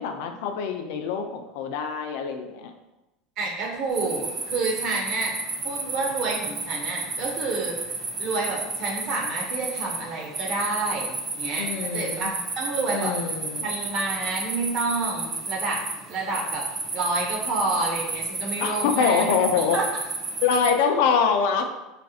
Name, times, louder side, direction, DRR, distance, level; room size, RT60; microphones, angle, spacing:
voice 1, 0.0-2.7 11.6-12.3 12.9-13.7 18.6-19.8 20.4-21.6, left 6 dB, 75° left, 6 dB, 0.4 m, -24 dB
voice 2, 3.4-5.3 5.6-7.7 8.2-11.6 11.9-13.1 13.6-15.8 16.1-16.6 16.9-19.4 19.7-19.9, right 3 dB, 55° right, -1 dB, 1.0 m, -29 dB
sound 1, 3.9-20.7, right 3 dB, 35° right, 0.6 m, -32 dB
4.0 x 2.4 x 2.4 m, 0.99 s
supercardioid pair, 105°, 0 cm